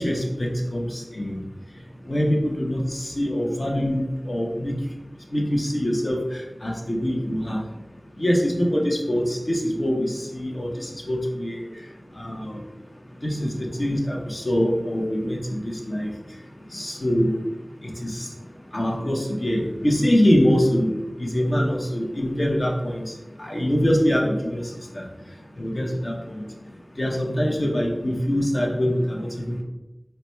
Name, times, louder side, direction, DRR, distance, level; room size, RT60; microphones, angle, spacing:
voice 1, 0.0-1.4 2.1-4.7 5.3-7.6 8.2-11.6 12.2-12.6 13.2-16.1 16.7-17.3 18.0-18.2 18.7-20.9 21.2-23.0 23.4-25.0 25.6-26.4 27.0-29.6, equal, 50° left, 0 dB, 0.8 m, -24 dB
4.1 x 2.2 x 4.3 m, 1.0 s
wide cardioid pair, 50°, 0 cm